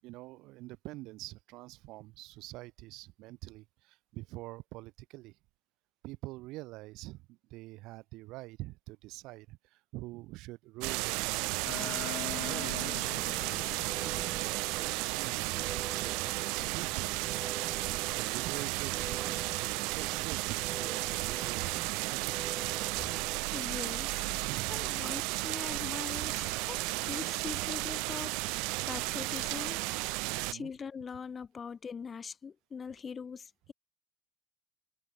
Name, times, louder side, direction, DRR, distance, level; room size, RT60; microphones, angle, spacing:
voice 1, 0.0-5.4 6.0-11.5 12.4-17.6 18.2-22.4 24.4-25.0 27.0-27.3 30.3-30.7, right 20 dB, 60° right, 6.2 m, -46 dB
sound 1, 10.8-30.5, right 29 dB, 80° right, 0.3 m, -34 dB
sound 2, 11.6-17.3, left 15 dB, 50° left, 1.0 m, -45 dB
sound 3, 13.1-23.4, right 4 dB, 15° right, 3.5 m, -46 dB
voice 2, 23.5-24.3 24.7-29.9 30.5-33.7, left 6 dB, 20° left, 4.1 m, -42 dB
cardioid pair, 170°, 0 cm